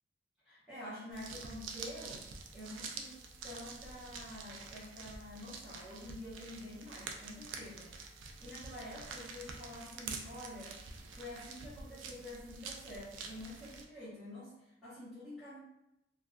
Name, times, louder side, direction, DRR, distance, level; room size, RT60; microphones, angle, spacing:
voice 1, 0.4-2.2 2.5-10.8 11.1-15.6, left 1 dB, ahead, -16 dB, 0.8 m, -48 dB
Crackly Egg Membrane Hatching Foley, 1.1-13.8, right 4 dB, 85° right, 0.3 m, -47 dB
2.5 x 2.2 x 2.2 m, 0.87 s
head